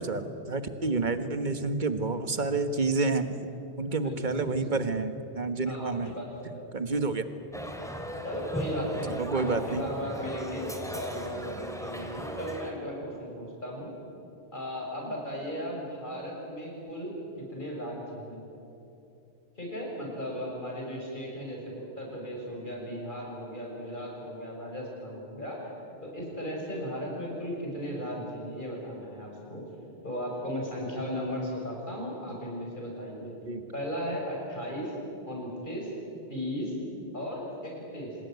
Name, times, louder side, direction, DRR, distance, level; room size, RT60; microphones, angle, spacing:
voice 1, 0.0-3.3 3.8-6.1 6.7-7.2 9.1-9.8 33.5-33.6, right 3 dB, 45° right, 10 dB, 1.5 m, -29 dB
voice 2, 4.0-4.4 5.7-6.7 8.2-13.9 14.5-18.4 19.5-25.7 26.0-29.6 30.0-33.4 33.7-34.9 35.3-35.9 36.3-36.7 37.1-38.2, equal, 45° left, -2 dB, 7.0 m, -36 dB
sound 1, 7.5-12.7, equal, 5° left, 2.5 m, -37 dB
26.0 x 20.5 x 9.4 m, 2.7 s
omnidirectional pair, 1.1 m